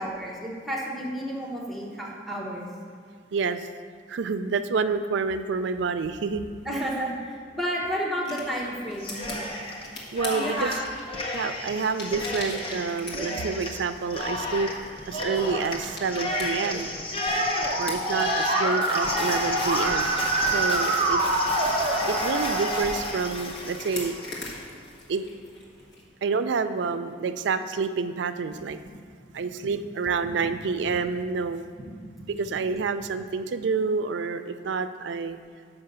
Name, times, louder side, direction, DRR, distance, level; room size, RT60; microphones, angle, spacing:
voice 1, 0.0-2.7 6.6-9.3 10.3-10.9 31.9-32.0, equal, ahead, -4 dB, 1.1 m, -31 dB
voice 2, 3.3-3.7 4.1-6.5 10.1-10.7 11.3-14.7 15.0-16.9 17.8-20.1 20.5-21.2 22.1-24.2 25.1-25.3 26.2-28.8 29.3-31.7 32.3-35.4, right 5 dB, 70° right, 10 dB, 0.4 m, -28 dB
sound 1, 8.2-26.1, left 2 dB, 60° left, 1.5 m, -43 dB
Cheering, 9.0-9.9 10.2-24.6, left 1 dB, 30° left, 0.7 m, -32 dB
Musical instrument, 17.3-22.8, right 2 dB, 30° right, 0.7 m, -26 dB
5.7 x 5.6 x 6.7 m, 2.1 s
head